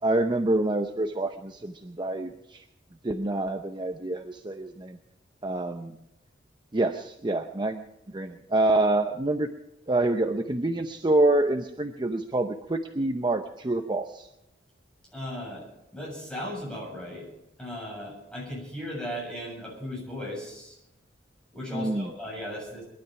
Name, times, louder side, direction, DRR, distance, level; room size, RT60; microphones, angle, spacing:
voice 1, 0.0-2.6 3.0-5.0 5.4-5.9 6.7-7.9 8.1-9.5 9.9-14.3 21.7-22.1, right 2 dB, 25° right, 6 dB, 0.7 m, -27 dB
voice 2, 15.1-15.7 15.9-17.3 17.6-20.8 21.5-22.8, left 1 dB, 5° left, -3 dB, 7.3 m, -36 dB
22.0 x 12.0 x 4.8 m, 0.86 s
head